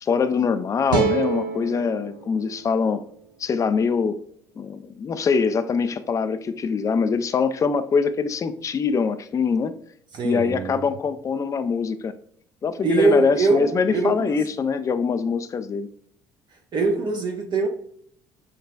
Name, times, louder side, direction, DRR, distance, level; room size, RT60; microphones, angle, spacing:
voice 1, 0.0-3.0 3.4-4.2 4.6-9.7 10.2-12.1 12.6-15.9, left 5 dB, 30° left, 0.4 m, -23 dB
sound 1, 0.9-4.1, right 6 dB, 85° right, 0.6 m, -29 dB
voice 2, 10.1-10.9 12.8-14.4 16.7-17.7, right 3 dB, 45° right, 0.7 m, -23 dB
6.7 x 2.4 x 2.2 m
hypercardioid pair, 55°, 11 cm